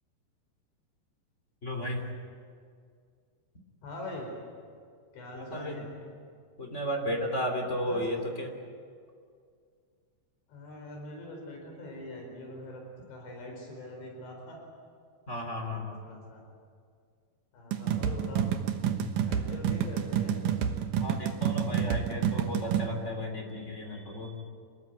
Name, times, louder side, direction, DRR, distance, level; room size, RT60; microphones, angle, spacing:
voice 1, 1.6-2.1 5.4-5.9 6.6-8.5 15.3-16.0 21.0-24.4, equal, 20° left, 3 dB, 2.5 m, -34 dB
voice 2, 3.8-4.3 5.1-6.1 7.9-8.0 10.5-12.8 13.1-14.6 15.6-16.4 17.5-18.5 19.2-20.6, left 2 dB, 75° left, 1 dB, 6.8 m, -43 dB
sound 1, 17.7-22.9, right 9 dB, 70° right, 2.0 m, -29 dB
27.0 x 21.0 x 9.2 m, 2.1 s
omnidirectional pair, 5.2 m